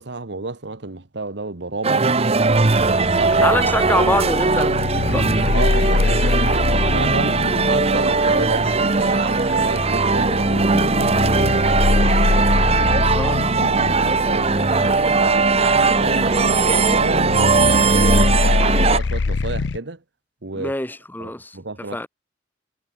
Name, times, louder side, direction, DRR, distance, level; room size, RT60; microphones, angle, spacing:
voice 1, 0.0-2.3 2.8-3.5 5.5-6.7 6.9-7.4 7.7-12.5 13.6-13.9 14.3-14.7 15.2-20.0 20.4-20.7 21.2-22.0, right 3 dB, 65° right, 1.4 m, -30 dB
sound 1, 1.8-19.0, right 4 dB, 35° right, 0.9 m, -19 dB
sound 2, 2.5-19.8, left 3 dB, 70° left, 0.6 m, -24 dB
voice 2, 3.4-5.3 12.9-13.5 14.8-15.0 20.5-22.1, left 1 dB, 10° left, 1.6 m, -25 dB
head